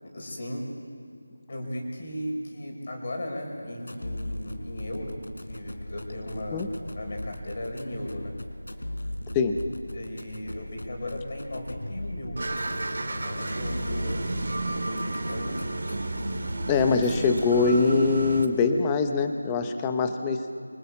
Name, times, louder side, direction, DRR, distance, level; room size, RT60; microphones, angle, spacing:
voice 1, 0.0-0.7 1.5-6.6 6.9-8.4 9.9-12.4 12.7-14.4 14.8-15.6, left 1 dB, 25° left, 1 dB, 5.3 m, -36 dB
sound 1, 3.8-17.8, left 1 dB, 80° left, 4.3 m, -38 dB
sound 2, 12.4-18.5, right 2 dB, 35° right, 2.8 m, -32 dB
voice 2, 16.7-20.5, left 4 dB, 5° left, 7 dB, 0.8 m, -23 dB
27.0 x 24.5 x 8.4 m, 2.3 s
figure-of-eight pair, 180°, 0 cm